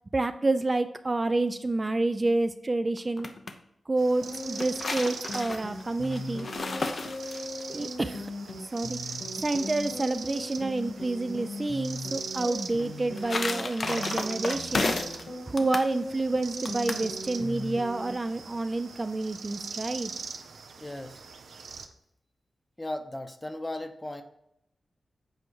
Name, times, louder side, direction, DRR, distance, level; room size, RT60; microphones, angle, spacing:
voice 1, 0.1-3.3 3.9-6.5 7.7-8.3 8.7-9.0 9.4-14.9 15.5-20.1, right 2 dB, 30° right, 9 dB, 0.4 m, -28 dB
sound 1, 3.0-3.5 4.3-7.6 12.8-15.2 15.6-15.9 16.7-17.1, left 3 dB, 55° left, 0.7 m, -33 dB
sound 2, 4.0-21.9, right 5 dB, 85° right, 0.7 m, -41 dB
sound 3, 4.2-18.1, left 2 dB, 90° left, 1.3 m, -39 dB
voice 2, 20.8-21.2 22.8-24.2, left 1 dB, 20° left, 7 dB, 0.8 m, -36 dB
8.3 x 4.8 x 4.7 m, 0.79 s
wide cardioid pair, 80°, 0 cm